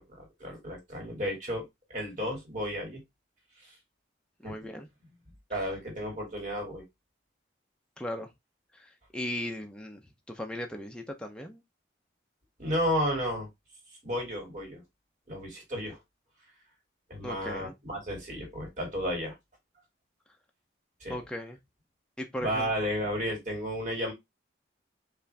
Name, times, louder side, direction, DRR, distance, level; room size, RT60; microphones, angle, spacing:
voice 1, 0.0-1.6 1.9-3.0 4.4-4.5 5.5-6.8 12.6-13.5 14.0-14.8 15.3-16.0 17.1-19.3 21.0-21.2 22.4-24.1, equal, 40° right, 2.4 m, -32 dB
voice 2, 4.4-4.9 5.5-5.7 8.0-8.3 8.7-10.0 10.3-11.6 17.2-17.7 21.1-21.6 22.2-22.7, left 1 dB, 5° left, 0.6 m, -37 dB
5.0 x 2.6 x 3.3 m
head